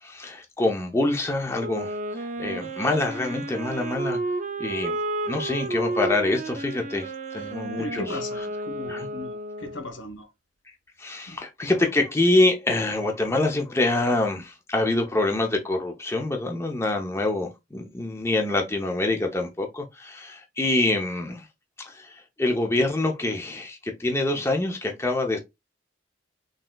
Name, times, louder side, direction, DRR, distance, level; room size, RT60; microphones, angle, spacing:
voice 1, 0.0-4.2 4.6-5.0 5.3-8.2 8.9-9.1 11.0-21.5 21.8-25.4, left 2 dB, 15° left, 0.6 m, -25 dB
Wind instrument woodwind instrument, 1.6-9.9, right 2 dB, 40° right, 0.4 m, -32 dB
voice 2, 7.4-10.3 11.3-11.4, left 1 dB, 80° left, 0.9 m, -38 dB
4.0 x 3.7 x 2.2 m
head